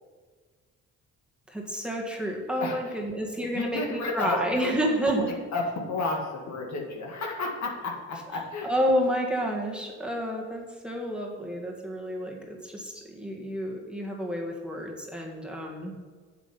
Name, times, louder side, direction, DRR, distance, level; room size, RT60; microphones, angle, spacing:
voice 1, 1.5-5.4 8.3-16.0, equal, 5° right, -1 dB, 1.9 m, -30 dB
voice 2, 3.5-4.7 5.2-5.3 5.5-8.7, left 3 dB, 65° left, 0 dB, 2.2 m, -31 dB
8.2 x 7.5 x 5.7 m, 1.5 s
cardioid pair, 90°, 30 cm